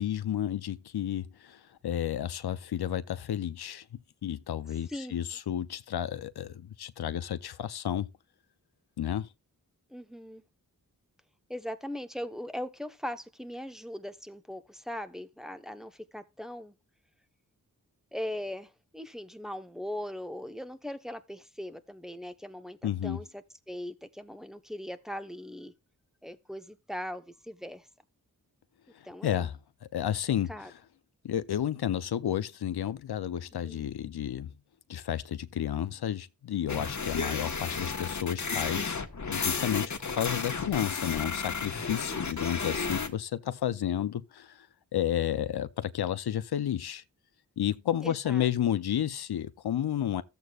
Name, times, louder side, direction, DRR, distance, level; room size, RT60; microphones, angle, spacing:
voice 1, 0.0-3.9 4.2-8.1 9.0-9.3 22.8-23.2 28.9-30.7 31.2-34.5 34.9-39.0 39.3-44.7 44.9-47.0 47.6-50.2, left 10 dB, 90° left, 0.6 m, -31 dB
voice 2, 9.9-10.4 11.5-16.7 18.1-22.8 23.0-25.7 26.2-27.9 29.0-29.5 30.1-30.2 30.5-30.7 33.6-33.9 48.0-48.5, left 1 dB, ahead, 0.9 m, -40 dB
sound 1, 36.7-43.1, left 4 dB, 50° left, 1.3 m, -33 dB
13.5 x 7.9 x 2.4 m
wide cardioid pair, 55°, 37 cm